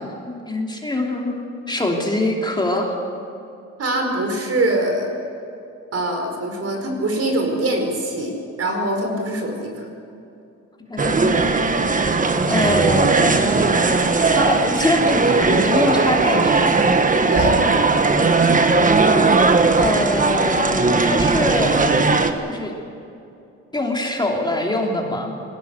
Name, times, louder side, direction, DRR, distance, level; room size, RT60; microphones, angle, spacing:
voice 1, 0.0-2.9 10.9-11.5 12.5-13.4 14.3-16.8 19.8-21.9 22.5-22.7 23.7-25.3, left 1 dB, 15° left, 0 dB, 3.0 m, -24 dB
voice 2, 3.8-5.1 5.9-8.3 8.6-9.8 17.3-17.5, right 1 dB, 55° right, 3 dB, 4.8 m, -23 dB
sound 1, 11.0-22.3, right 3 dB, 25° right, 1.5 m, -17 dB
20.5 x 16.5 x 8.1 m, 2.6 s
cardioid pair, 90°, 30 cm